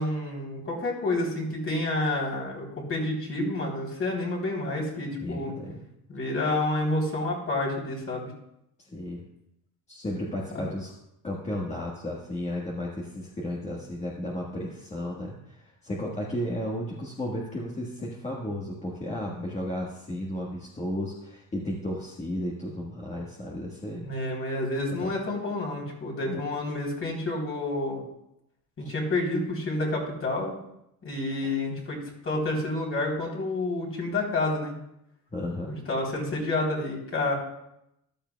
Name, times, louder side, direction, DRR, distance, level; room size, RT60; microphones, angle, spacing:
voice 1, 0.0-5.5 6.1-8.3 10.5-10.6 24.0-28.0 28.8-30.6 31.0-34.7 35.7-37.3, left 2 dB, 35° left, -1 dB, 3.4 m, -29 dB
voice 2, 5.1-5.8 8.8-9.2 9.9-10.9 11.2-24.0 25.0-25.1 26.2-26.4 28.8-28.9 31.4-31.5 35.3-35.8, left 1 dB, 20° left, -4 dB, 1.4 m, -34 dB
14.5 x 12.0 x 2.3 m, 0.82 s
cardioid pair, 135°, 37 cm